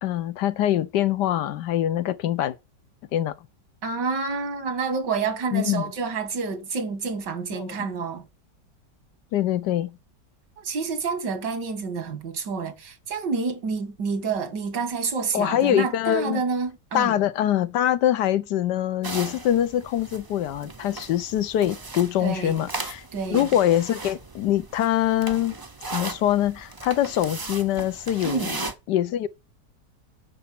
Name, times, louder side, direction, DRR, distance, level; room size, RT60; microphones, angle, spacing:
voice 1, 0.0-2.6 3.1-3.3 5.5-5.9 7.6-7.8 9.3-10.0 15.3-16.4 16.9-23.0 23.3-25.6 25.9-28.6 28.9-29.3, left 12 dB, 80° left, 1.3 m, -24 dB
voice 2, 3.8-8.2 10.6-17.1 22.2-22.6 23.1-23.5 28.2-28.5, right 5 dB, 85° right, 2.3 m, -28 dB
sound 1, 19.0-28.7, right 3 dB, 30° right, 0.4 m, -37 dB
10.5 x 4.1 x 7.5 m
omnidirectional pair, 1.8 m